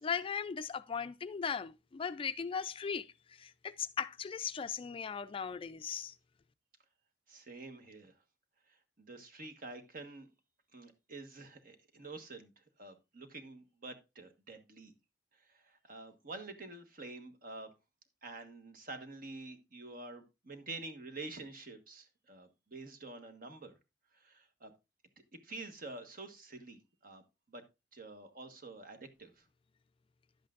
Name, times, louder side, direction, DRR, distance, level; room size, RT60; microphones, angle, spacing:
voice 1, 0.0-3.1 3.4-6.1, left 6 dB, 30° left, 0.3 m, -38 dB
voice 2, 7.3-8.1 9.0-10.3 10.7-12.5 12.8-14.9 15.5-17.7 18.2-23.7 24.1-24.7 25.3-27.2 27.5-27.6 27.9-29.4, right 3 dB, 50° right, 1.3 m, -48 dB
10.5 x 8.2 x 2.5 m
head